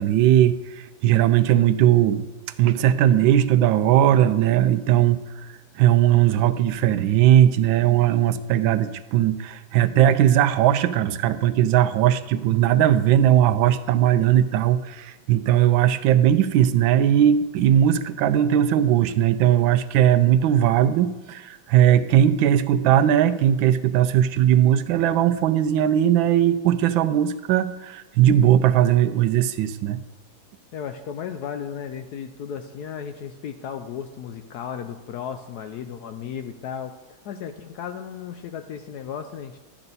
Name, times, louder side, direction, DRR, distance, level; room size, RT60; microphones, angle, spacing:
voice 1, 0.0-2.2 2.6-30.0, right 11 dB, 80° right, 10 dB, 1.3 m, -19 dB
voice 2, 30.7-37.0 37.2-39.6, left 8 dB, 70° left, 7 dB, 1.0 m, -35 dB
12.0 x 8.8 x 4.1 m, 1.1 s
omnidirectional pair, 2.1 m